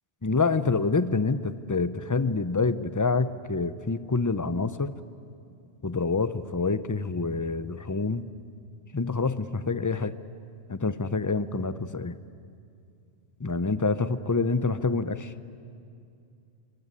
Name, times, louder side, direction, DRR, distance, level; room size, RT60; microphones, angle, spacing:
voice 1, 0.2-4.9 5.8-8.2 8.9-10.2 10.7-12.2 13.4-15.3, left 4 dB, 20° left, 13 dB, 0.6 m, -27 dB
25.0 x 24.0 x 9.8 m, 2.4 s
omnidirectional pair, 1.2 m